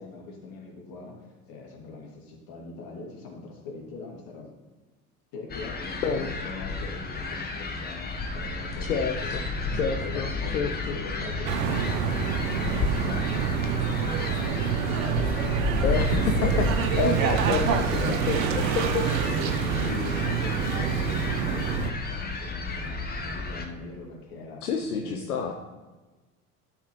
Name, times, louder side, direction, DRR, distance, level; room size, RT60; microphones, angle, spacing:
voice 1, 0.0-4.5 5.3-9.7 10.0-16.3 16.6-16.7 17.9-18.3 18.8-25.5, left 3 dB, 50° left, -1 dB, 2.6 m, -41 dB
sound 1, 5.5-23.6, left 3 dB, 20° left, 1.1 m, -32 dB
voice 2, 8.9-9.4 9.7-11.0 15.8-16.2 16.8-18.6 18.9-19.0 24.6-25.5, left 5 dB, 75° left, 5 dB, 0.8 m, -29 dB
sound 2, 11.5-21.9, right 7 dB, 65° right, 0.9 m, -27 dB
13.0 x 5.8 x 3.2 m, 1.2 s
figure-of-eight pair, 65°, 45 cm